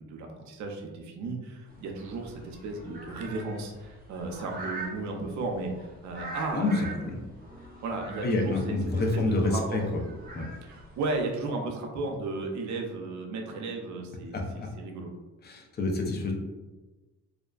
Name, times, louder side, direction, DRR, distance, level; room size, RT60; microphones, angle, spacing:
voice 1, 0.0-7.3 7.8-8.8 9.1-9.8 10.6-14.4 14.8-15.1, right 3 dB, 70° right, 2 dB, 0.6 m, -34 dB
sound 1, 1.7-11.2, right 2 dB, 30° right, 0.7 m, -44 dB
voice 2, 8.2-9.8 10.3-10.5 14.3-14.7 15.4-16.3, left 2 dB, 35° left, 1 dB, 0.5 m, -28 dB
2.5 x 2.1 x 2.3 m, 1.2 s
cardioid pair, 90°, 30 cm